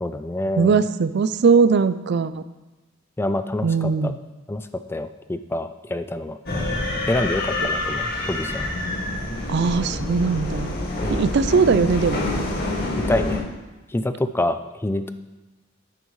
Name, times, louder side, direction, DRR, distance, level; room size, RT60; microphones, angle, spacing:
voice 1, 0.0-0.8 3.2-4.1 4.5-6.4 7.1-8.7 11.0-11.3 13.1-13.4 13.9-15.1, left 1 dB, 10° left, 10 dB, 0.3 m, -26 dB
voice 2, 0.6-2.4 3.6-4.2 9.5-10.7 11.1-12.2, right 5 dB, 55° right, 14 dB, 0.4 m, -20 dB
sound 1, 6.5-13.4, left 2 dB, 50° left, 2.0 m, -27 dB
11.5 x 9.2 x 3.2 m, 1.1 s
head